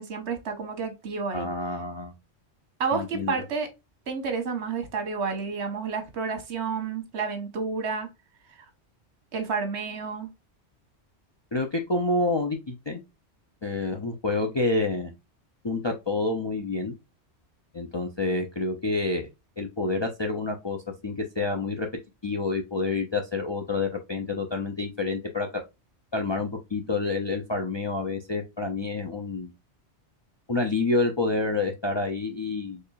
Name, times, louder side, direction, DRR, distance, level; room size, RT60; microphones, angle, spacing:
voice 1, 0.0-1.5 2.8-3.7 4.1-8.1 8.6-8.7 9.3-10.3, right 5 dB, 75° right, 1.2 m, -30 dB
voice 2, 1.3-2.1 2.9-3.3 11.5-13.0 13.6-15.1 15.6-16.9 17.7-19.3 19.6-20.8 21.0-21.9 22.2-25.6 26.1-29.5 30.5-32.8, left 3 dB, 40° left, 0.4 m, -28 dB
4.3 x 3.2 x 2.3 m
omnidirectional pair, 1.1 m